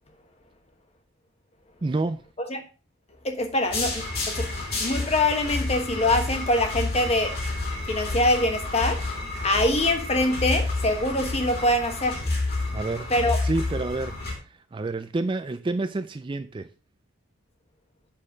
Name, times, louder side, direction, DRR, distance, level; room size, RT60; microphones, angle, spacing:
voice 1, 1.8-2.2 12.7-13.1 13.4-16.7, right 2 dB, 20° right, 0.3 m, -29 dB
voice 2, 3.2-4.5 4.8-7.4 7.9-9.0 9.4-12.2 13.1-13.4, left 1 dB, 30° left, 1.2 m, -24 dB
sound 1, 3.7-14.3, left 2 dB, 45° left, 2.9 m, -30 dB
7.5 x 6.5 x 5.0 m
head